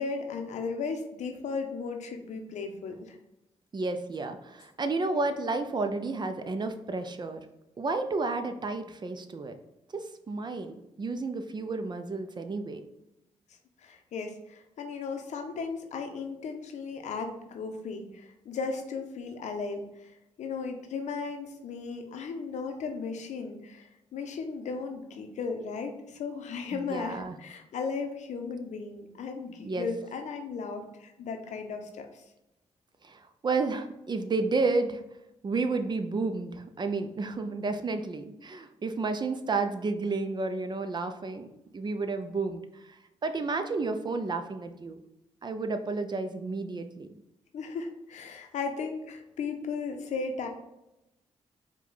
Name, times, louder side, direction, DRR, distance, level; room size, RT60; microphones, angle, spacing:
voice 1, 0.0-3.2 13.8-20.1 20.4-32.2 47.5-50.5, left 4 dB, 75° left, 5 dB, 0.6 m, -36 dB
voice 2, 3.7-7.4 7.8-9.5 9.9-12.8 26.7-27.4 29.6-29.9 33.0-35.0 35.4-41.5 41.7-45.0 45.4-47.1, right 3 dB, 40° right, 8 dB, 0.5 m, -31 dB
4.6 x 2.3 x 3.9 m, 0.90 s
cardioid pair, 65°, 12 cm